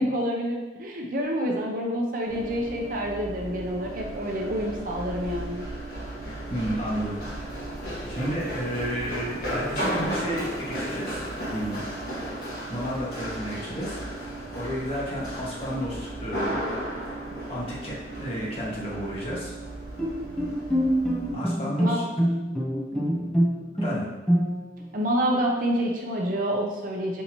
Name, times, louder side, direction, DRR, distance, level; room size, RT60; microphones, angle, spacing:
voice 1, 0.0-5.6 21.8-22.0 22.9-23.2 24.9-27.2, equal, 50° right, 0 dB, 0.6 m, -28 dB
Run, 2.3-21.3, right 1 dB, 55° left, 1.3 m, -35 dB
voice 2, 6.5-7.2 8.1-11.2 11.5-11.8 12.7-14.0 14.5-16.6 17.5-19.5 21.3-22.0 23.8-24.0, equal, 35° left, -6 dB, 1.1 m, -31 dB
Bowed string instrument, 20.0-24.8, equal, 5° left, 0.5 m, -25 dB
5.4 x 2.7 x 3.0 m, 1.1 s
head